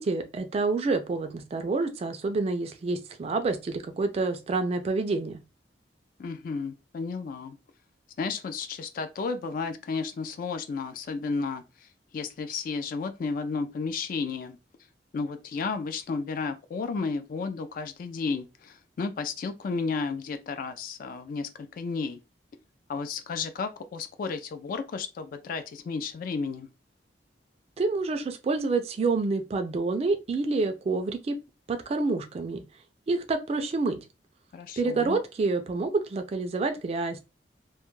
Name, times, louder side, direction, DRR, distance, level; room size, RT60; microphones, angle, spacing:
voice 1, 0.0-5.4 27.8-31.3 31.7-32.6 33.1-34.0 34.8-37.2, right 3 dB, 35° right, 0.3 m, -28 dB
voice 2, 6.2-7.6 8.2-11.9 12.1-14.6 15.1-22.2 22.9-26.7 34.5-35.2, left 4 dB, 50° left, 0.3 m, -33 dB
2.2 x 2.1 x 3.0 m
head